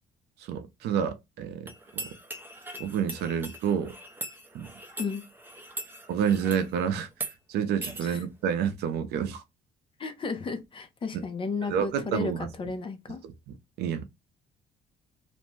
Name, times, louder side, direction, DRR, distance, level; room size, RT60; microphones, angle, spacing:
voice 1, 0.4-1.7 1.9-2.1 2.8-4.0 4.5-4.7 6.1-7.1 7.5-9.4 11.1-11.2 11.7-12.5 13.2-13.3 13.8-14.1, right 8 dB, 75° right, 0.6 m, -29 dB
sound 1, 1.7-6.7 7.1-7.3 7.8-8.0, right 2 dB, 10° right, 0.5 m, -40 dB
voice 2, 10.0-12.3 12.6-13.2, left 4 dB, 30° left, 0.6 m, -33 dB
2.6 x 2.1 x 3.1 m
cardioid pair, 110°, 17 cm